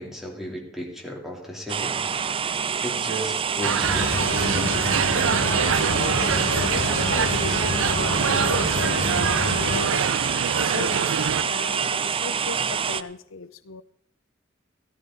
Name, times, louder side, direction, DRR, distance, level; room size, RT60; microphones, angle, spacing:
voice 1, 0.0-2.0 2.8-5.0, equal, ahead, -1 dB, 3.3 m, -35 dB
sound 1, 1.7-13.0, right 7 dB, 25° right, 0.4 m, -26 dB
sound 2, 3.6-11.4, right 7 dB, 80° right, 0.5 m, -26 dB
sound 3, 3.8-9.9, left 4 dB, 35° left, 0.5 m, -29 dB
voice 2, 5.9-10.4 10.7-13.8, left 4 dB, 80° left, 13 dB, 0.7 m, -37 dB
14.5 x 13.0 x 4.0 m, 0.71 s
head